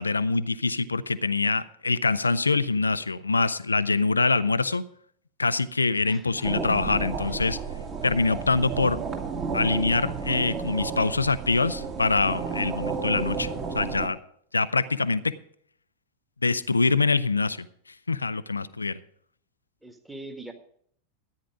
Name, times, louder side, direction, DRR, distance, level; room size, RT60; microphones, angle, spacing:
voice 1, 0.0-4.8 5.4-7.6 8.0-9.0 9.5-13.5 13.7-14.2 14.5-15.3 16.4-17.7 18.1-19.0, left 3 dB, 80° left, 16 dB, 0.6 m, -24 dB
voice 2, 6.0-6.5 7.2-7.4 19.8-20.5, right 2 dB, 5° right, 6 dB, 1.7 m, -42 dB
sound 1, 6.4-14.1, right 5 dB, 30° right, 2.2 m, -32 dB
13.5 x 9.7 x 5.0 m, 0.63 s
figure-of-eight pair, 90°, 0 cm